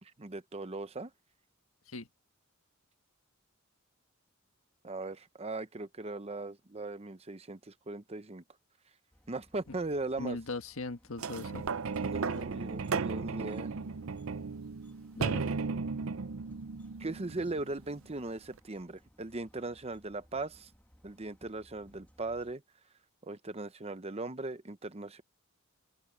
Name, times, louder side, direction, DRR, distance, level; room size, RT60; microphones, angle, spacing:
voice 1, 0.0-1.1 4.8-8.4 9.3-10.4 12.0-13.7 17.0-20.7 21.0-22.6 23.2-25.2, right 2 dB, 30° right, 0.8 m, -39 dB
sound 1, 9.1-22.6, equal, 10° left, 2.0 m, -62 dB
voice 2, 10.2-11.7 12.3-12.4 15.2-15.4, left 3 dB, 85° left, 1.5 m, -39 dB
sound 2, 11.2-17.9 18.6-18.7, right 5 dB, 75° right, 0.6 m, -35 dB
open air
head